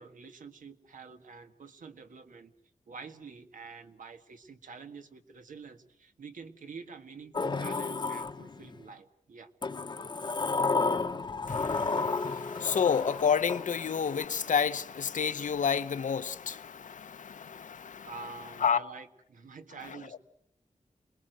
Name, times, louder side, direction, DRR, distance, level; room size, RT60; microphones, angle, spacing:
voice 1, 0.0-2.5 2.9-9.5 18.0-20.2, right 4 dB, 85° right, 1.7 m, -47 dB
Sliding door, 7.3-8.8 9.6-14.2, left 4 dB, 35° left, 0.9 m, -32 dB
voice 2, 11.5-18.1 18.6-18.8 19.9-20.0, left 7 dB, 75° left, 0.9 m, -30 dB
28.0 x 21.0 x 7.9 m
wide cardioid pair, 160°, 13 cm